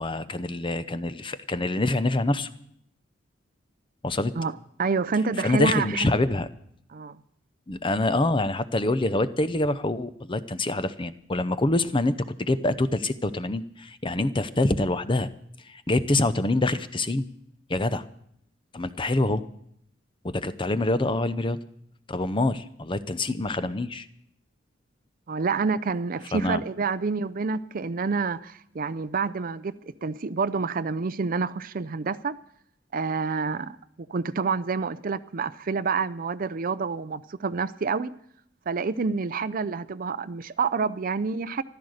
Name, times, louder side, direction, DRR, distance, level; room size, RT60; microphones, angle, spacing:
voice 1, 0.0-2.5 4.0-4.3 5.4-6.5 7.7-15.3 15.7-17.3 17.7-18.0 18.7-19.4 20.2-21.6 22.1-24.1 26.3-26.6, left 2 dB, 25° left, 0.7 m, -25 dB
voice 2, 4.8-5.9 6.9-7.2 25.3-29.7 30.0-32.4 32.9-33.8 34.1-38.1 38.7-41.6, right 4 dB, 45° right, 0.5 m, -28 dB
14.5 x 12.5 x 6.5 m
head